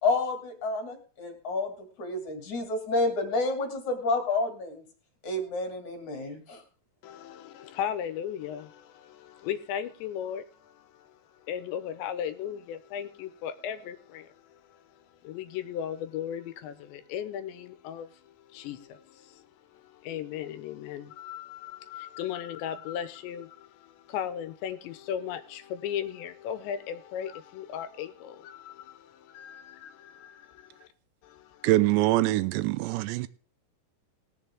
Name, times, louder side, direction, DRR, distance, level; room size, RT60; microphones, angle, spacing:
voice 1, 0.0-4.8 5.2-6.6, left 2 dB, 45° left, 3.6 m, -29 dB
voice 2, 7.0-14.8 15.2-19.5 19.7-30.9 31.2-31.7, left 9 dB, 85° left, 3.3 m, -37 dB
voice 3, 31.6-33.3, right 16 dB, 85° right, 2.9 m, -24 dB
19.5 x 7.4 x 3.5 m
omnidirectional pair, 5.0 m